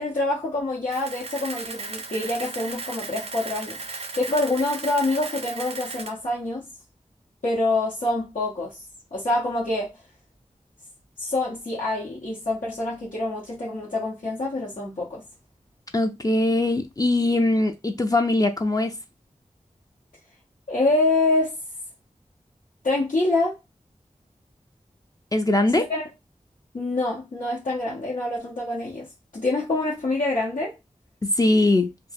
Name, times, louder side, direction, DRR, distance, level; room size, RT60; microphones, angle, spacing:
voice 1, 0.0-6.7 7.4-8.8 9.1-9.9 11.2-15.2 20.7-21.6 22.8-23.6 25.7-26.0 26.7-29.1 29.3-30.8, left 2 dB, 80° left, 0.8 m, -26 dB
Camera, 0.9-6.1, right 3 dB, 50° right, 0.4 m, -36 dB
voice 2, 15.9-19.0 25.3-25.9 31.2-31.9, left 2 dB, 30° left, 0.4 m, -21 dB
2.3 x 2.1 x 3.3 m
wide cardioid pair, 45°, 13 cm